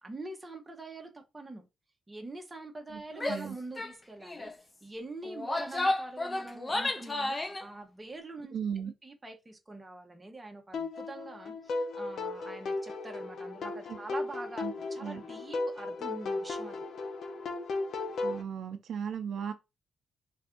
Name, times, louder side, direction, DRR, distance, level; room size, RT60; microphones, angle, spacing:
voice 1, 0.0-1.6 2.1-8.5 9.0-16.9, right 2 dB, 15° right, 0.8 m, -44 dB
Female speech woman speaking / Yell, 3.1-3.5 3.8-3.9 4.2-4.5 5.2-7.6, left 2 dB, 20° left, 0.4 m, -32 dB
voice 2, 8.5-8.9 13.9-14.0 14.6-14.7 15.0-15.2 18.2-19.5, right 7 dB, 70° right, 0.4 m, -36 dB
sound 1, 10.7-18.4, left 3 dB, 65° left, 0.7 m, -36 dB
3.3 x 2.6 x 3.6 m
wide cardioid pair, 145°, 0 cm